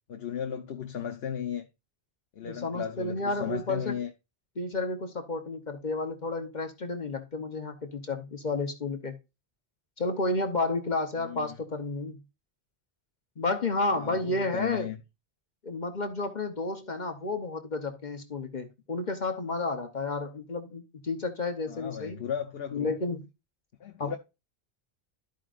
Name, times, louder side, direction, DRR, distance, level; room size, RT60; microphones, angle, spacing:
voice 1, 0.1-1.7 2.3-4.1 11.2-11.6 13.9-15.0 21.6-22.9 23.8-24.2, left 8 dB, 70° left, 1.0 m, -35 dB
voice 2, 2.4-4.0 4.6-9.2 10.0-12.2 13.4-14.9 15.6-22.2 22.7-23.2 24.0-24.2, left 3 dB, 45° left, 1.0 m, -31 dB
13.0 x 5.1 x 2.4 m
omnidirectional pair, 1.1 m